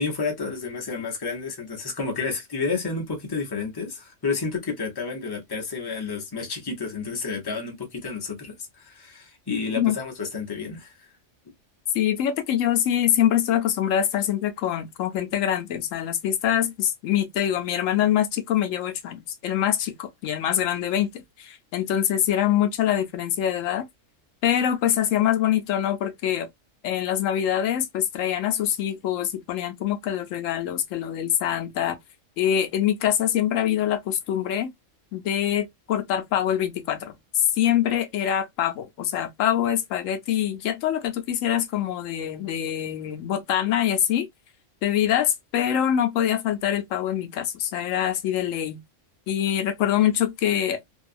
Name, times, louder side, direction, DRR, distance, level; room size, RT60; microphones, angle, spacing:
voice 1, 0.0-11.1, left 4 dB, 20° left, 0.7 m, -30 dB
voice 2, 11.9-23.9 24.4-26.5 26.8-32.0 32.4-34.7 35.1-44.3 44.8-48.8 49.3-50.8, left 10 dB, 80° left, 1.0 m, -24 dB
2.7 x 2.3 x 2.4 m
omnidirectional pair, 1.3 m